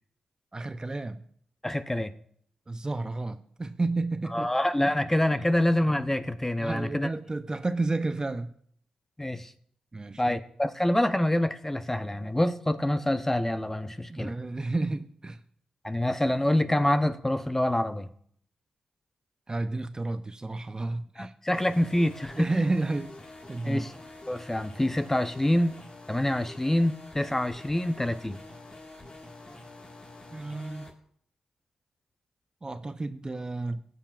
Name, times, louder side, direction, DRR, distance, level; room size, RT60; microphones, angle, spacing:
voice 1, 0.5-1.2 2.7-4.5 4.9-5.0 5.4-5.6 6.6-8.6 9.9-10.4 14.1-15.4 19.5-21.3 22.4-23.1 23.5-23.8 30.3-30.9 32.6-33.9, right 2 dB, 30° right, 11 dB, 0.6 m, -31 dB
voice 2, 1.6-2.1 4.3-7.1 9.2-9.5 10.2-14.3 15.8-18.1 21.2-22.5 23.6-23.9 24.3-25.7 26.1-28.4, left 1 dB, 15° left, 10 dB, 0.7 m, -26 dB
sound 1, 21.5-30.9, left 2 dB, 40° left, 1.7 m, -47 dB
18.5 x 6.9 x 2.4 m, 0.64 s
cardioid pair, 55°, 3 cm